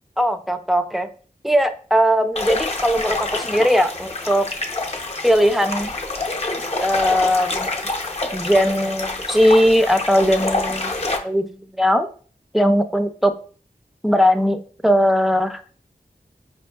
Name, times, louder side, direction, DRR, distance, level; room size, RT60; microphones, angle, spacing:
voice 1, 0.2-1.1 1.4-4.5 5.2-5.9 6.8-7.9 8.3-10.9 11.2-11.5 11.8-12.1 12.5-13.3 14.0-15.6, equal, ahead, 8 dB, 0.4 m, -19 dB
sound 1, 2.4-11.2, left 2 dB, 40° left, 0.6 m, -27 dB
4.9 x 2.6 x 2.3 m, 0.42 s
wide cardioid pair, 65°, 16 cm